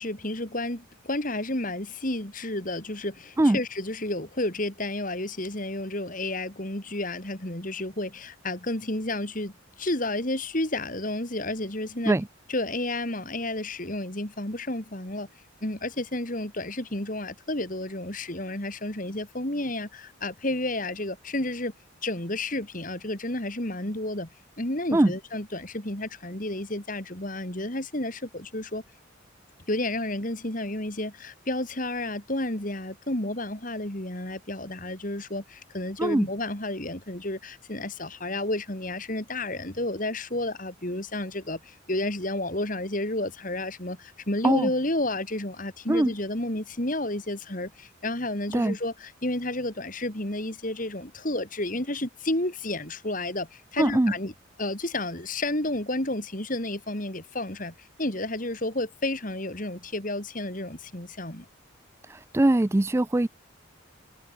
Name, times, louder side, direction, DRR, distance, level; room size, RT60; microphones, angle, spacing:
voice 1, 0.0-9.5 9.8-12.2 12.5-15.3 15.6-21.7 22.0-24.3 24.6-28.8 29.7-54.3 54.6-61.4, left 1 dB, 40° left, 3.1 m, -31 dB
voice 2, 53.8-54.1 62.1-63.3, right 1 dB, 15° right, 0.3 m, -22 dB
head